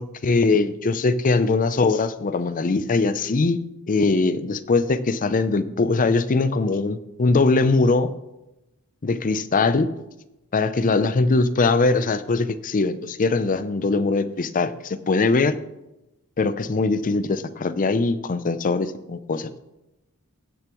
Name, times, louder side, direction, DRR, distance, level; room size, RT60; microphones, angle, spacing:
voice 1, 0.0-3.6 3.9-8.1 9.0-9.9 10.5-15.6 16.4-19.5, left 3 dB, 40° left, 13 dB, 0.5 m, -21 dB
16.5 x 6.9 x 3.0 m, 0.96 s
head